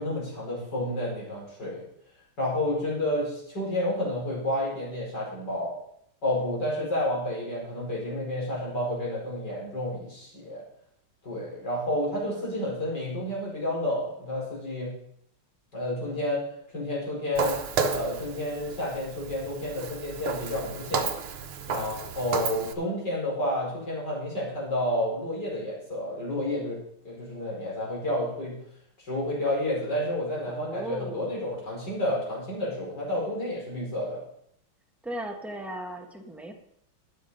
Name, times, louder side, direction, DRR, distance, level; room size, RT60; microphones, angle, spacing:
voice 1, 0.0-1.8 2.4-5.7 6.2-10.6 11.2-14.9 15.7-16.4 16.7-17.6 17.9-21.1 21.7-26.8 27.0-28.6 29.1-34.2, left 1 dB, 50° left, -4 dB, 5.7 m, -30 dB
voice 2, 12.3-12.7 30.5-31.4 35.0-36.5, right 1 dB, ahead, 2 dB, 1.2 m, -38 dB
Walk footsteps, 17.4-22.7, right 5 dB, 80° right, 1.9 m, -32 dB
12.5 x 8.6 x 5.5 m, 0.70 s
omnidirectional pair, 2.3 m